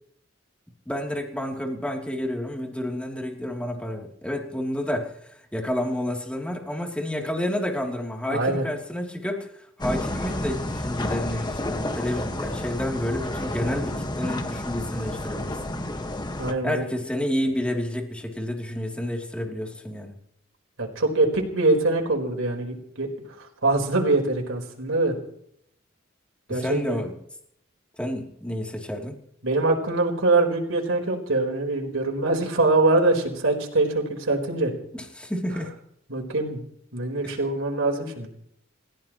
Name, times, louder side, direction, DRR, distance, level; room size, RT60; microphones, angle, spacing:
voice 1, 0.8-15.6 16.6-20.1 26.5-27.1 28.0-29.2 34.9-35.7, left 1 dB, 5° left, 1 dB, 3.0 m, -30 dB
voice 2, 8.3-8.7 16.4-16.8 20.8-23.1 23.4-25.2 26.5-27.0 29.4-34.7 36.1-36.6 36.9-38.3, right 2 dB, 80° right, 2 dB, 4.3 m, -23 dB
sound 1, 9.8-16.5, left 1 dB, 20° left, 1.5 m, -30 dB
29.0 x 16.0 x 3.1 m, 0.70 s
head